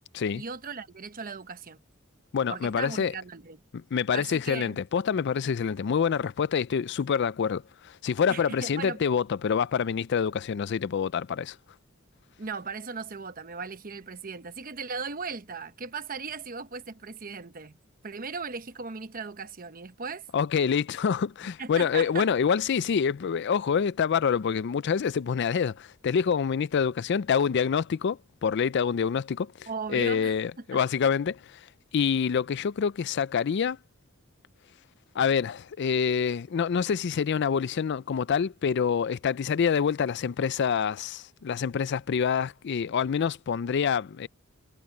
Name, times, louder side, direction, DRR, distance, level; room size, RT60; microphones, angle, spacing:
voice 1, 0.3-1.8 2.5-3.6 4.1-4.8 8.3-9.0 12.4-17.8 18.0-20.3 21.6-22.3 29.7-30.8, right 5 dB, 45° right, 1.0 m, -37 dB
voice 2, 2.3-3.1 3.7-11.6 20.3-31.6 31.9-33.8 35.1-44.3, left 7 dB, 55° left, 0.4 m, -26 dB
head